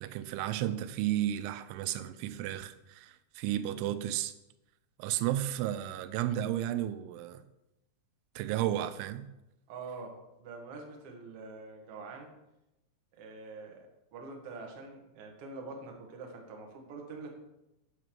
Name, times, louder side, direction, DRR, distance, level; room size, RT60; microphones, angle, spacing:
voice 1, 0.0-4.3 5.0-7.4 8.4-9.3, right 12 dB, 90° right, 3.0 m, -33 dB
voice 2, 9.7-12.3 13.1-17.3, right 3 dB, 65° right, 1.4 m, -45 dB
8.9 x 4.9 x 7.5 m
omnidirectional pair, 5.3 m